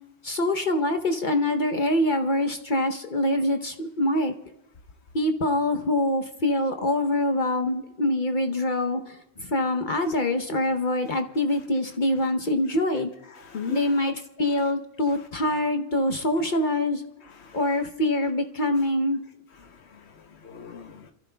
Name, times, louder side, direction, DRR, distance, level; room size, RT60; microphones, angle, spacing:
voice 1, 0.2-4.3 5.1-13.1 13.7-17.0 17.5-19.2, left 1 dB, 50° left, 5 dB, 0.9 m, -25 dB
voice 2, 13.3-14.1 14.5-14.6 15.1-15.2 16.1-16.2 17.2-17.7 18.8-18.9 19.5-21.1, left 6 dB, 80° left, 5 dB, 1.1 m, -40 dB
28.0 x 15.0 x 2.2 m, 0.94 s
omnidirectional pair, 1.1 m